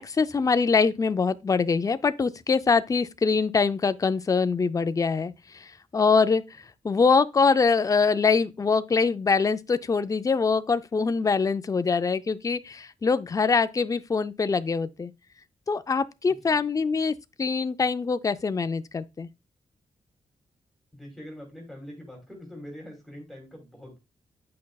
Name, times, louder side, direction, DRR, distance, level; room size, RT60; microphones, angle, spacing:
voice 1, 0.0-15.1 15.7-19.3, left 5 dB, 25° left, 0.4 m, -24 dB
voice 2, 20.9-24.0, equal, ahead, 2.5 m, -43 dB
8.5 x 5.4 x 2.3 m
cardioid pair, 95°, 13 cm